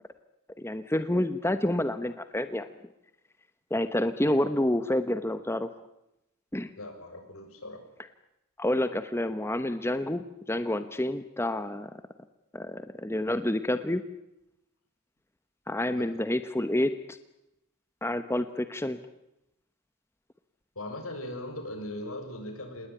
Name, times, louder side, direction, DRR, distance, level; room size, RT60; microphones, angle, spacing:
voice 1, 0.6-2.7 3.7-5.7 6.5-6.7 8.6-11.9 12.5-14.0 15.7-17.2 18.0-19.0, left 1 dB, 10° left, 10 dB, 1.0 m, -28 dB
voice 2, 4.2-4.7 6.8-7.8 16.0-16.1 20.8-22.9, left 1 dB, 75° left, 5 dB, 7.0 m, -39 dB
27.0 x 20.0 x 9.1 m, 0.89 s
head